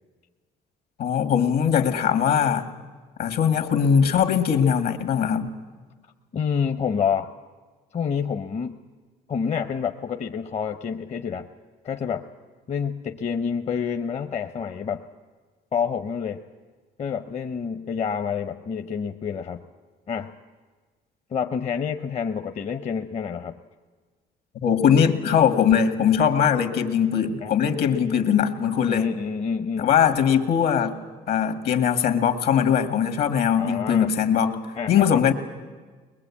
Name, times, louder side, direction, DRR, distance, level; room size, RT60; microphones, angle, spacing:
voice 1, 1.0-2.7 3.2-5.5 24.6-29.1 29.8-31.0 31.3-34.6 34.9-35.3, left 8 dB, 65° left, 8 dB, 2.0 m, -21 dB
voice 2, 6.3-7.3 7.9-8.8 9.3-11.5 11.8-12.2 12.7-15.0 15.7-16.4 17.0-19.6 20.1-20.3 21.3-23.6 27.4-27.5 28.9-29.9 33.6-34.1 34.8-35.1, left 6 dB, 40° left, 7 dB, 0.8 m, -28 dB
21.5 x 21.5 x 8.5 m, 1.4 s
cardioid pair, 110°, 17 cm